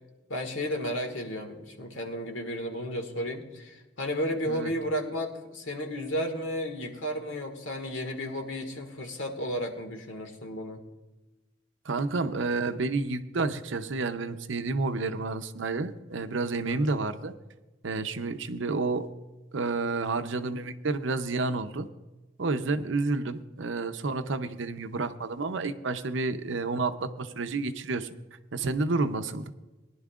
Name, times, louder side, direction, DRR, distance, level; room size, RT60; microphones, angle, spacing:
voice 1, 0.3-10.8 16.7-16.8, equal, 70° left, 4 dB, 1.9 m, -33 dB
voice 2, 11.9-17.3 17.8-19.1 19.5-21.9 22.4-28.1 28.5-29.5, right 3 dB, 65° right, 10 dB, 0.7 m, -30 dB
21.0 x 11.0 x 2.4 m, 1.1 s
head